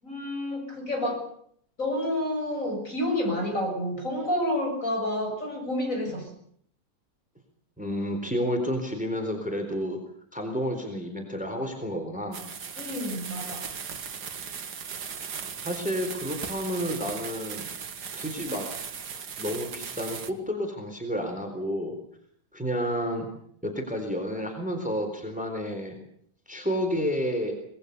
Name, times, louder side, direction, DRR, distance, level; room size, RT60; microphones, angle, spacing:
voice 1, 0.0-1.2 1.8-6.3 12.8-13.6, left 1 dB, 45° left, 2 dB, 7.6 m, -29 dB
voice 2, 7.8-10.0 10.3-12.4 15.6-17.6 18.1-18.7 19.4-21.9 22.5-23.3 23.6-26.0 26.5-27.5, equal, 5° right, 4 dB, 4.0 m, -30 dB
sound 1, 12.3-20.3, right 6 dB, 70° right, 2.1 m, -37 dB
25.0 x 20.0 x 6.9 m, 0.66 s
omnidirectional pair, 1.9 m